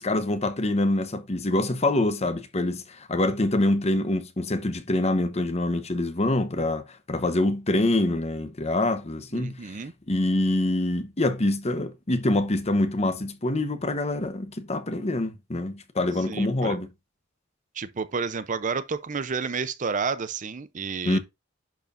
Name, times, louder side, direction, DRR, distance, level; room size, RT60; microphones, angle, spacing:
voice 1, 0.0-9.8 10.1-16.9 21.0-21.2, left 2 dB, 35° left, 1.0 m, -25 dB
voice 2, 9.3-9.9 16.3-16.8 17.8-21.2, right 5 dB, 40° right, 0.6 m, -30 dB
10.5 x 4.5 x 2.5 m
head